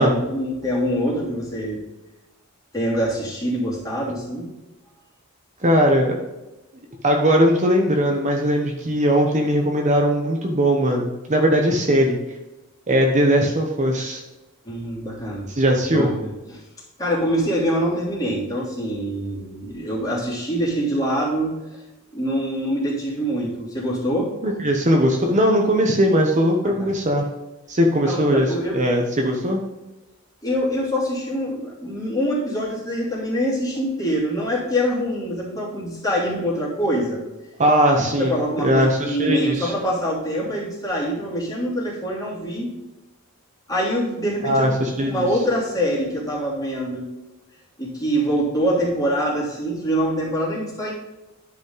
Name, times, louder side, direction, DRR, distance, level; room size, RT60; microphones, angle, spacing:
voice 1, 0.0-1.8 2.7-4.5 14.6-15.5 15.9-16.6 17.0-21.8 22.1-24.3 26.6-26.9 28.1-28.8 30.4-37.2 38.2-42.7 43.7-44.7 45.0-47.0 47.8-50.9, equal, 15° left, -6 dB, 3.2 m, -24 dB
voice 2, 5.6-6.2 7.0-12.2 12.9-14.2 15.5-16.1 24.4-27.3 27.7-28.5 28.7-29.6 37.6-39.7 44.4-45.3, equal, 35° right, 1 dB, 0.9 m, -19 dB
11.0 x 5.1 x 3.9 m, 1.1 s
head